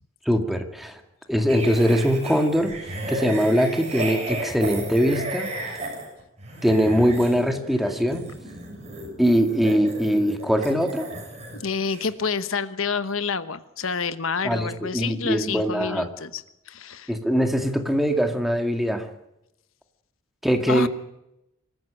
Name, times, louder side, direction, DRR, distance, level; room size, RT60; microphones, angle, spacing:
voice 1, 0.3-1.0 1.3-2.8 3.1-5.8 6.6-8.3 9.2-11.1 14.4-14.7 14.9-16.1 17.1-19.1 20.4-20.9, equal, ahead, 5 dB, 2.2 m, -22 dB
sound 1, 1.5-11.6 11.9-12.1, right 2 dB, 35° right, 6.5 m, -34 dB
voice 2, 11.6-17.1 20.7-20.9, left 5 dB, 85° left, 12 dB, 1.2 m, -28 dB
25.5 x 14.5 x 8.9 m, 0.85 s
head